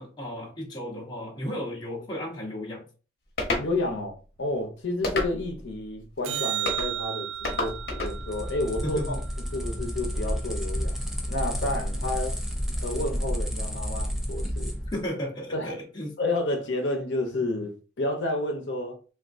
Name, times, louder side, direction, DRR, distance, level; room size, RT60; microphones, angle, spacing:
voice 1, 0.0-2.9 8.8-9.2 14.9-16.1, equal, 20° left, 0.8 m, -34 dB
sound 1, 3.4-3.7 5.0-5.6 6.7-6.9 7.4-8.2, left 2 dB, 50° left, 1.0 m, -29 dB
voice 2, 3.6-9.2 9.5-10.9 11.3-12.4 12.8-14.7 15.5-15.8 16.2-19.0, left 2 dB, 70° left, 0.7 m, -30 dB
sound 2, 6.2-10.7 17.3-17.4, right 11 dB, 85° right, 0.3 m, -35 dB
sound 3, 7.4-15.0, equal, ahead, 0.4 m, -31 dB
3.6 x 2.4 x 2.5 m
head